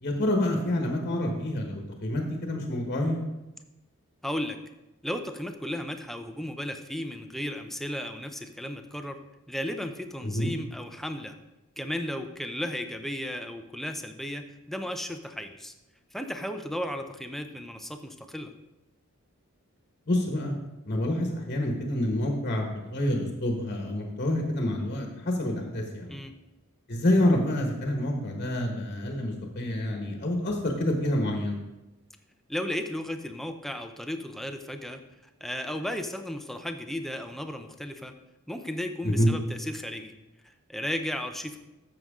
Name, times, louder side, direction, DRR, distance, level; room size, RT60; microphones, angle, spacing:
voice 1, 0.0-3.2 10.2-10.5 20.1-20.5 20.8-26.2 26.9-31.6 39.0-39.3, left 1 dB, 40° left, 1 dB, 1.3 m, -27 dB
voice 2, 4.2-4.6 5.0-9.2 9.5-11.3 11.8-15.7 16.1-18.5 26.1-26.3 32.5-35.0 35.4-38.1 38.5-40.1 40.4-41.6, left 1 dB, ahead, 6 dB, 0.6 m, -34 dB
12.5 x 7.7 x 3.7 m, 0.99 s
head